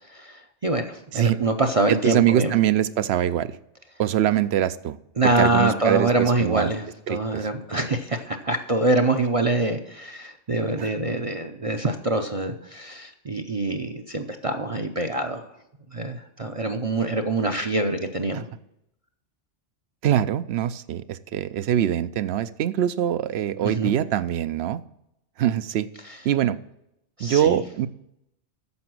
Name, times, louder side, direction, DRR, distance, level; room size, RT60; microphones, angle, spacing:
voice 1, 0.1-2.5 5.2-15.4 15.9-18.5 23.6-23.9 26.1-26.2 27.2-27.6, right 2 dB, 35° right, 6 dB, 0.6 m, -25 dB
voice 2, 1.9-3.5 4.0-5.0 5.4-6.7 7.1-7.5 10.8-10.9 18.3-18.4 20.0-24.8 25.4-25.9 26.2-26.6 27.2-27.9, right 11 dB, 65° right, 15 dB, 0.8 m, -23 dB
9.6 x 7.0 x 6.0 m, 0.82 s
omnidirectional pair, 1.2 m